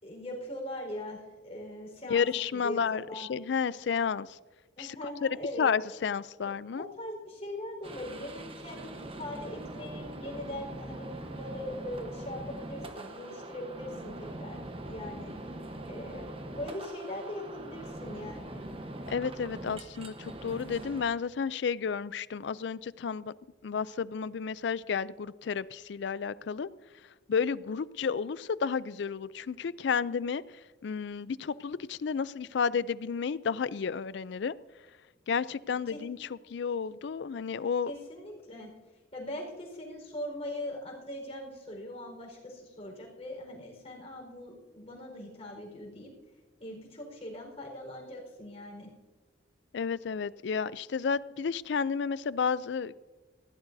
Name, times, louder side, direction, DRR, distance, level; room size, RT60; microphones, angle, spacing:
voice 1, 0.0-3.3 4.8-5.7 6.4-15.3 15.9-18.6 35.9-36.0 37.9-38.7 39.1-46.1 46.6-48.9, left 1 dB, 30° left, -1 dB, 4.5 m, -41 dB
voice 2, 2.1-4.4 4.8-5.0 5.2-5.3 5.6-6.9 19.1-23.3 23.6-26.7 27.3-30.4 30.8-34.6 35.3-37.9 49.7-52.9, left 6 dB, 65° left, 18 dB, 0.4 m, -31 dB
sound 1, 7.8-21.0, right 1 dB, 30° right, 1.0 m, -42 dB
19.5 x 16.0 x 2.7 m, 1.2 s
head